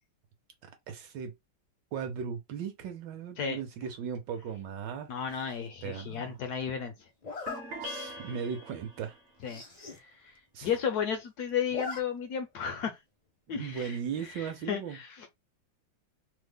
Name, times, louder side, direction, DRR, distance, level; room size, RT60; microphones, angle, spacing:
voice 1, 0.9-1.3 1.9-5.1 5.8-6.3 7.8-9.2 10.5-10.7 13.5-15.0, right 7 dB, 75° right, 1.3 m, -37 dB
voice 2, 5.1-6.9 9.4-9.6 9.9-10.4 10.6-13.0 13.5-15.3, left 7 dB, 70° left, 0.9 m, -34 dB
Zipper (clothing), 5.3-5.7 7.2-7.6 8.2-8.3 8.7-8.8 9.0-9.1 9.4-10.0 10.3-10.4 10.6-11.2 11.5-12.0 12.3-12.4 13.8-14.1, left 4 dB, 45° left, 0.5 m, -41 dB
sound 1, 7.5-9.2, equal, 55° right, 0.9 m, -42 dB
3.2 x 2.1 x 3.4 m
omnidirectional pair, 2.1 m